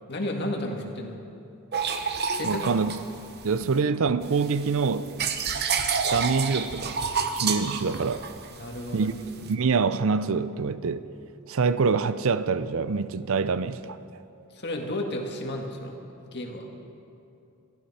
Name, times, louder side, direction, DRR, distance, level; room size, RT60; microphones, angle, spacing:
voice 1, 0.1-1.2 2.3-2.7 8.6-9.1 14.5-16.0 16.3-16.7, left 1 dB, 50° left, 1.8 m, -32 dB
sound 1, 1.7-3.8 4.2-9.5, right 5 dB, 45° right, 0.9 m, -29 dB
voice 2, 2.4-3.0 3.4-5.1 6.1-7.0 7.3-8.2 8.9-9.1 9.4-11.1 11.5-14.0, right 5 dB, 65° right, 0.5 m, -25 dB
21.5 x 14.5 x 4.3 m
head